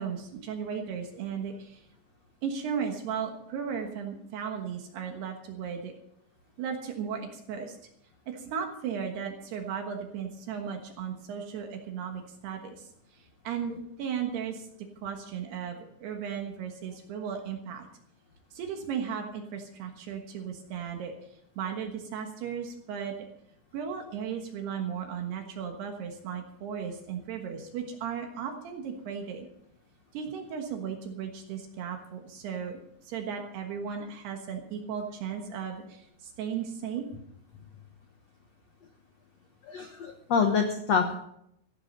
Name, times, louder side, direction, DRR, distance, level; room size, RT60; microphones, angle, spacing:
voice 1, 0.0-1.8 2.4-5.9 6.6-7.8 8.3-14.7 15.0-17.9 18.5-21.1 21.6-23.3 23.7-29.5 30.1-37.0, right 7 dB, 70° right, 4 dB, 3.3 m, -36 dB
voice 2, 39.6-41.2, left 5 dB, 85° left, 5 dB, 1.4 m, -27 dB
15.0 x 12.5 x 5.4 m, 0.74 s
omnidirectional pair, 5.1 m